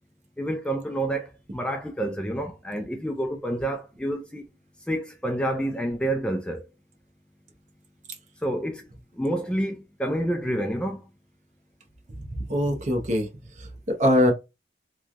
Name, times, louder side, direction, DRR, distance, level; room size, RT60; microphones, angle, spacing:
voice 1, 0.4-4.4 4.9-6.7 8.4-8.9 9.2-11.0, right 1 dB, 5° left, 0.3 m, -28 dB
voice 2, 12.2-13.3 13.6-14.3, left 1 dB, 40° right, 0.8 m, -23 dB
3.1 x 2.2 x 2.5 m
head